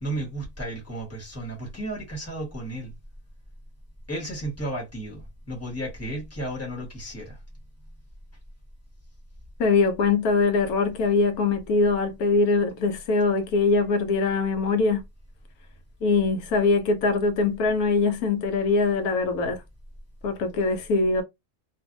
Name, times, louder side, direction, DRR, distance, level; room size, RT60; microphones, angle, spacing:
voice 1, 0.0-2.9 4.1-7.4, right 1 dB, 10° left, 1.1 m, -33 dB
voice 2, 9.6-15.0 16.0-19.6 20.2-21.2, left 3 dB, 75° left, 1.1 m, -22 dB
2.6 x 2.5 x 2.5 m
omnidirectional pair, 1.6 m